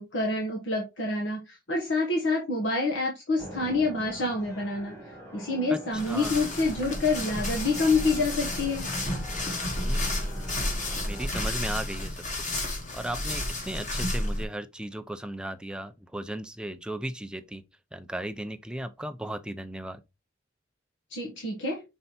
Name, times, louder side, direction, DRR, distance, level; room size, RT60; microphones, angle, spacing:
voice 1, 0.0-8.9 21.1-21.8, left 3 dB, 70° left, 1.3 m, -27 dB
sound 1, 3.4-11.3, equal, 15° left, 1.8 m, -44 dB
sound 2, 5.9-14.4, left 1 dB, 40° left, 1.8 m, -31 dB
voice 2, 6.1-6.4 9.8-10.1 10.9-12.3 12.9-17.6 17.9-20.0, right 1 dB, 5° right, 0.5 m, -36 dB
5.5 x 4.5 x 4.1 m
head